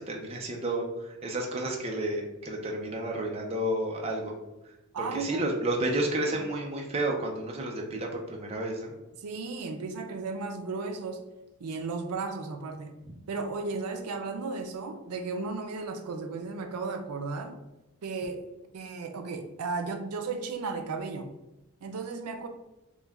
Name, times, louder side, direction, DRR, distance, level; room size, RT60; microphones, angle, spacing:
voice 1, 0.0-4.3 5.0-8.9, right 1 dB, 25° right, 0 dB, 0.5 m, -31 dB
voice 2, 4.9-5.5 6.3-6.4 9.2-11.2 11.6-12.9 13.3-17.6 18.0-18.4 18.7-21.3 21.8-22.5, right 4 dB, 85° right, 6 dB, 0.4 m, -34 dB
3.1 x 2.2 x 3.4 m, 0.97 s
head